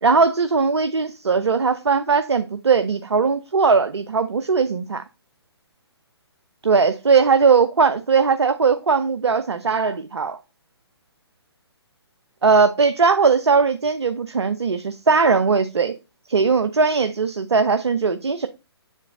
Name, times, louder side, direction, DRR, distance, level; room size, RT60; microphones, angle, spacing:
voice 1, 0.0-5.0 6.6-10.4 12.4-16.0 16.3-18.5, right 5 dB, 75° right, 0.6 m, -19 dB
7.4 x 4.0 x 4.0 m
figure-of-eight pair, 135°, 14 cm